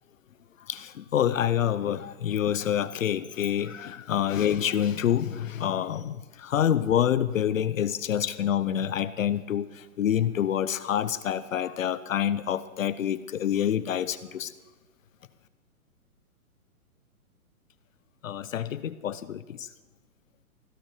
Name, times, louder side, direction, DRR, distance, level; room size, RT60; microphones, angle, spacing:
voice 1, 0.7-14.5 18.2-19.7, left 10 dB, 65° left, 15 dB, 0.8 m, -27 dB
16.0 x 8.8 x 6.7 m, 1.2 s
hypercardioid pair, 135°, 44 cm